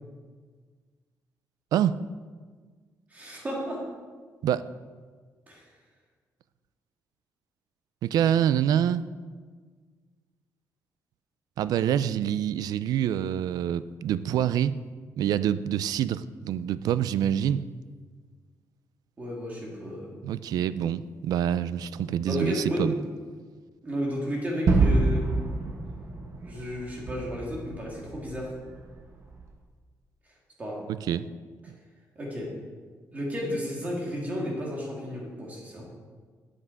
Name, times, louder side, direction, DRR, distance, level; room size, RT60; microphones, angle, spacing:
voice 1, 3.1-3.8 5.5-5.6 19.2-20.2 22.3-23.1 23.8-25.4 26.4-28.5 30.6-30.8 32.1-32.5 33.1-35.8, equal, 25° right, -3 dB, 2.4 m, -32 dB
voice 2, 8.0-9.0 11.6-14.8 15.2-17.6 20.2-22.9 30.9-31.3, right 10 dB, 75° right, 15 dB, 0.4 m, -26 dB
Gunshot gunfire / Fireworks / Boom, 24.7-29.5, right 3 dB, 45° right, 1.1 m, -27 dB
9.7 x 7.9 x 4.6 m, 1.5 s
cardioid pair, 175°, 7 cm